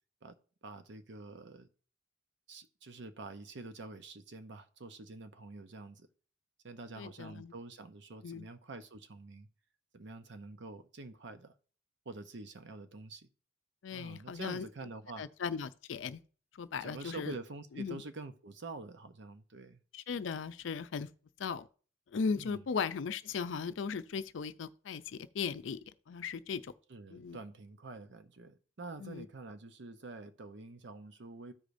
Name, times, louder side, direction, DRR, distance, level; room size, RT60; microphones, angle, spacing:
voice 1, 0.6-1.7 2.5-6.1 6.6-9.5 9.9-11.5 12.1-13.3 13.9-15.3 16.8-19.8 22.4-22.6 26.9-31.5, right 3 dB, 65° right, 0.7 m, -47 dB
voice 2, 7.0-7.5 8.2-8.5 13.8-14.7 15.2-16.2 16.5-17.3 17.7-18.0 19.9-21.1 21.4-21.7 22.1-25.8 26.1-26.7 27.1-27.4 29.0-29.3, left 5 dB, 75° left, 0.4 m, -37 dB
14.0 x 4.9 x 2.6 m
head